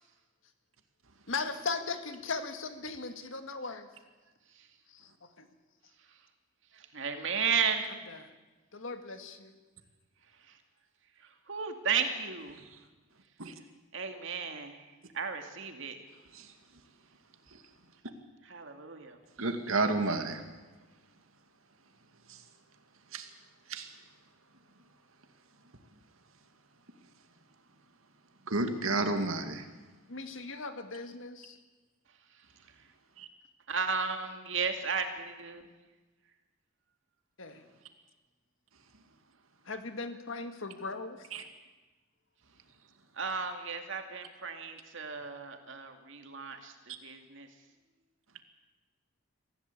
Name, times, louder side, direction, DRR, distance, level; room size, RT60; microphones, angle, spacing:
voice 1, 1.3-3.9 4.9-5.0 5.4-5.5 8.1-8.2 8.7-9.5 30.1-31.6 37.4-37.6 39.7-41.2, left 4 dB, 65° left, 8 dB, 1.9 m, -38 dB
voice 2, 6.7-7.9 10.5-10.6 11.2-12.6 13.9-14.9 15.1-16.0 18.4-19.2 33.7-35.7 43.2-47.5, right 6 dB, 65° right, 5 dB, 2.5 m, -34 dB
voice 3, 19.4-20.4 22.3-22.4 23.1-23.3 23.7-23.9 28.5-29.7 33.2-33.3 41.3-41.4, right 2 dB, 80° right, 7 dB, 2.3 m, -31 dB
24.0 x 15.5 x 8.5 m, 1.2 s
head